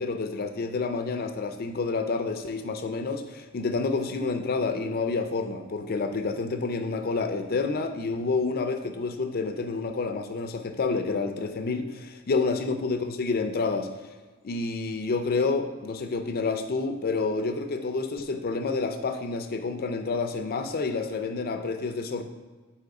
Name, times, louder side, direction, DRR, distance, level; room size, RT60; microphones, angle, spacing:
voice 1, 0.0-13.9 14.4-22.2, left 4 dB, 45° left, 7 dB, 0.4 m, -29 dB
7.7 x 3.0 x 4.7 m, 1.3 s
head